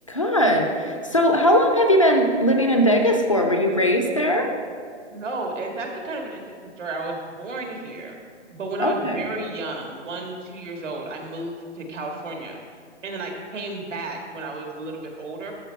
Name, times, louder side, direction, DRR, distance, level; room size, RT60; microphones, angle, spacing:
voice 1, 0.1-4.5 8.8-9.2, equal, 30° left, 3 dB, 0.4 m, -19 dB
voice 2, 5.1-6.4 6.8-8.2 8.5-12.6 13.0-15.5, right 2 dB, 85° right, 1 dB, 1.9 m, -32 dB
12.5 x 4.3 x 4.5 m, 2.1 s
hypercardioid pair, 165°, 36 cm